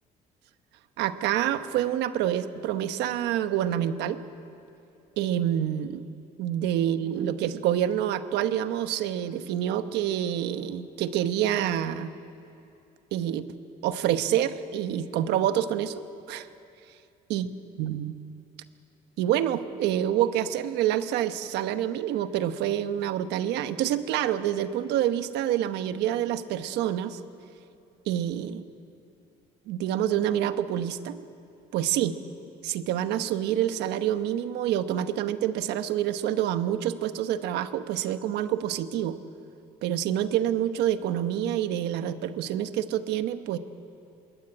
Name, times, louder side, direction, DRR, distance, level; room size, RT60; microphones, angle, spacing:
voice 1, 1.0-4.2 5.2-6.1 6.4-12.1 13.1-13.5 13.8-16.5 17.3-17.5 17.8-18.1 19.2-27.2 28.1-28.6 29.7-31.2 31.7-32.2 32.6-39.2 39.8-43.6, right 11 dB, 85° right, 10 dB, 1.2 m, -27 dB
22.5 x 20.5 x 8.8 m, 2.7 s
cardioid pair, 110°, 17 cm